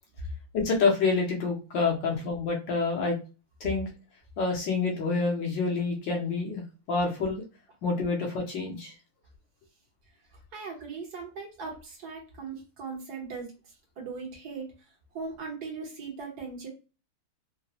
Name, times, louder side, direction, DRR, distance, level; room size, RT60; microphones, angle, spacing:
voice 1, 0.5-3.2 3.6-3.8 4.4-7.4 7.8-8.9, left 4 dB, 65° left, 0 dB, 1.4 m, -27 dB
voice 2, 10.5-13.5 14.0-14.7 15.1-16.7, right 4 dB, 55° right, 0 dB, 1.5 m, -39 dB
3.9 x 2.2 x 2.8 m, 0.32 s
omnidirectional pair, 2.3 m